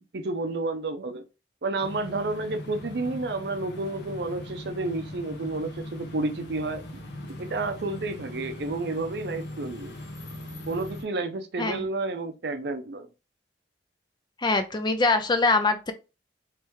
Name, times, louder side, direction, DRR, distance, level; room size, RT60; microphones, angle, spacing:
voice 1, 0.1-1.2 1.6-6.8 7.2-9.9 10.7-13.1, right 2 dB, 65° right, 0.6 m, -30 dB
sound 1, 1.8-11.0, left 1 dB, 80° left, 1.0 m, -40 dB
voice 2, 14.4-15.9, left 3 dB, 25° left, 0.5 m, -23 dB
3.2 x 3.1 x 3.4 m
head